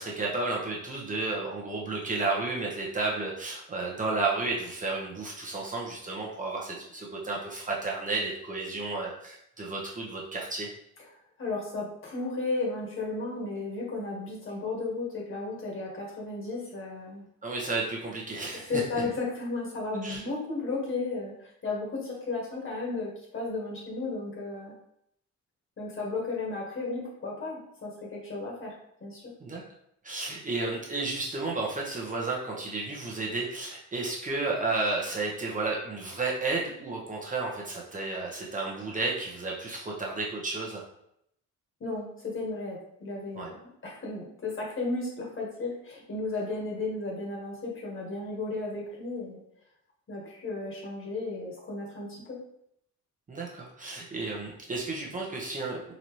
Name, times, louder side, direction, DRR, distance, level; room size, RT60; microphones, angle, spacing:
voice 1, 0.0-10.7 17.4-18.7 20.0-20.2 29.4-29.6 30.0-40.8 43.3-43.5 53.3-55.9, right 3 dB, 25° right, -3 dB, 0.9 m, -32 dB
voice 2, 11.4-17.2 18.7-24.7 25.8-29.3 41.8-49.4 50.1-52.4, left 3 dB, 40° left, -3 dB, 1.5 m, -34 dB
4.0 x 2.8 x 3.1 m, 0.75 s
cardioid pair, 90°, 30 cm